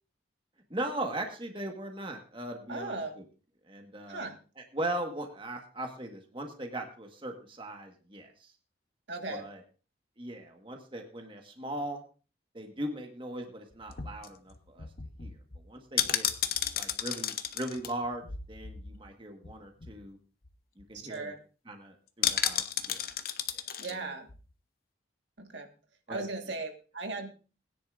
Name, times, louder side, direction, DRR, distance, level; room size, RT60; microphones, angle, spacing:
voice 1, 0.7-3.2 3.7-4.3 4.6-8.5 9.3-9.6 10.2-12.0 12.5-14.9 15.2-16.3 16.7-20.2 20.8-21.3 21.7-23.1 23.9-24.1 26.1-26.2, right 1 dB, 30° right, 4 dB, 1.5 m, -39 dB
voice 2, 2.7-3.1 4.1-4.4 9.1-9.4 21.0-21.4 23.8-24.3 25.4-25.7 26.1-27.3, right 3 dB, 75° right, 4 dB, 1.7 m, -37 dB
sound 1, 13.7-19.1 19.4-19.5 19.8-20.1 20.4-20.5 20.8-21.2 22.2-23.9 24.3-24.4, left 9 dB, 50° left, 0.8 m, -33 dB
20.0 x 10.0 x 2.6 m, 0.34 s
head